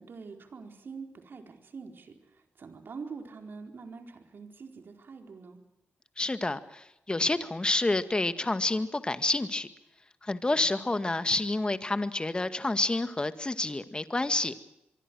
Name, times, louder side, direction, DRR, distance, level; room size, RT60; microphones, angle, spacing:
voice 1, 0.0-5.6, right 5 dB, 60° right, 5 dB, 4.4 m, -45 dB
voice 2, 6.2-9.7 10.2-14.5, left 2 dB, 25° left, 11 dB, 1.9 m, -29 dB
25.0 x 24.0 x 6.4 m, 0.88 s
cardioid pair, 75°, 4 cm